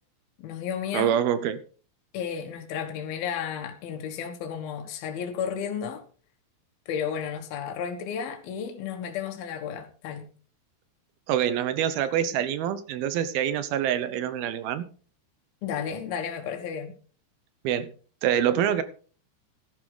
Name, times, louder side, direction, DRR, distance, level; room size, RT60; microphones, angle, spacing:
voice 1, 0.4-1.1 2.1-6.0 6.9-10.3 15.6-16.9, left 7 dB, 75° left, 3.2 m, -33 dB
voice 2, 0.9-1.6 11.3-14.8 17.6-17.9 18.2-18.8, right 10 dB, 75° right, 2.7 m, -25 dB
14.0 x 11.0 x 3.9 m
omnidirectional pair, 4.5 m